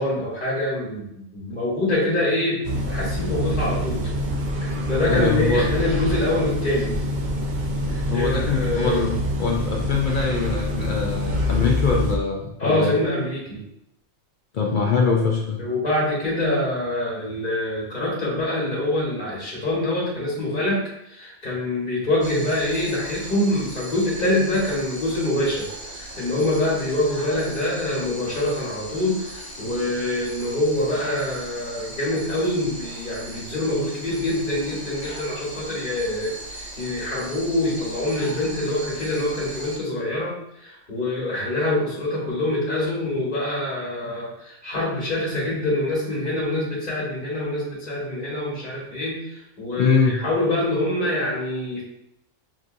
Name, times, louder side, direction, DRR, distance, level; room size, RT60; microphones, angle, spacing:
voice 1, 0.0-4.0 4.6-6.9 7.9-9.2 12.6-13.6 15.6-20.8 21.1-40.3 40.6-49.2 49.6-51.8, left 1 dB, 40° left, -8 dB, 1.3 m, -25 dB
sound 1, 2.6-12.2, left 1 dB, 55° right, 0.5 m, -26 dB
voice 2, 5.1-5.7 8.1-13.0 14.5-15.6 49.8-50.2, left 4 dB, 70° left, -1 dB, 0.4 m, -23 dB
sound 2, 22.2-39.8, right 1 dB, 85° right, 2.3 m, -38 dB
6.2 x 2.6 x 2.5 m, 0.78 s
omnidirectional pair, 1.4 m